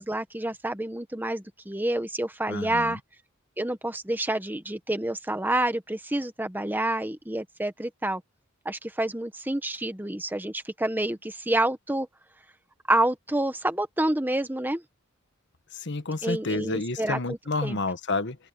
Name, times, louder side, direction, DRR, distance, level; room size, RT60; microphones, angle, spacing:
voice 1, 0.0-3.0 3.6-8.2 8.6-12.1 12.9-14.8 16.2-17.8, right 1 dB, 10° right, 1.1 m, -28 dB
voice 2, 2.5-3.0 15.7-18.4, left 3 dB, 55° left, 1.5 m, -30 dB
open air
head